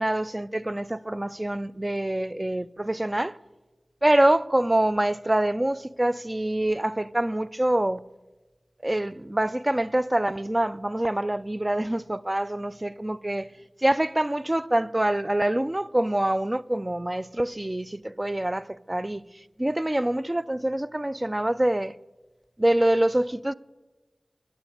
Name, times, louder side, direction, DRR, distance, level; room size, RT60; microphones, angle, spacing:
voice 1, 0.0-3.4 4.0-8.0 8.8-13.5 13.8-19.2 19.6-21.9 22.6-23.5, right 1 dB, 25° right, 0.4 m, -25 dB
9.8 x 8.6 x 8.5 m
cardioid pair, 45°, 0 cm